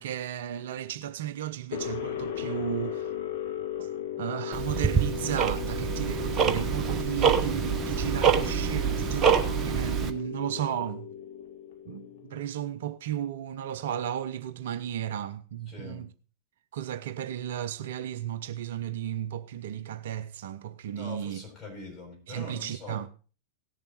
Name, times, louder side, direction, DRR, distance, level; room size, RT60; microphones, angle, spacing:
voice 1, 0.0-3.1 3.8-3.9 4.2-11.1 11.9-16.1 16.7-21.4 22.3-23.1, right 10 dB, 55° right, 0.6 m, -34 dB
sound 1, 1.7-12.6, left 9 dB, 55° left, 1.2 m, -36 dB
Tick-tock, 4.5-10.1, right 7 dB, 25° right, 1.1 m, -26 dB
voice 2, 15.7-16.1 21.0-23.0, left 3 dB, 20° left, 6.5 m, -43 dB
17.5 x 6.9 x 4.2 m
figure-of-eight pair, 90°, 0 cm